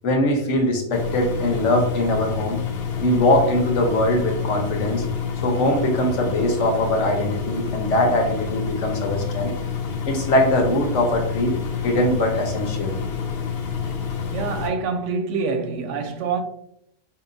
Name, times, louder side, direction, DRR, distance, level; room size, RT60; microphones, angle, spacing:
voice 1, 0.0-2.6 3.0-5.0 5.4-9.5 10.1-11.6 11.8-13.0, left 1 dB, 80° left, 1.2 m, -21 dB
Engine, 0.9-14.7, left 6 dB, 65° left, 0.8 m, -28 dB
voice 2, 14.3-16.4, right 4 dB, 85° right, 0.9 m, -26 dB
4.7 x 2.8 x 2.5 m
omnidirectional pair, 1.2 m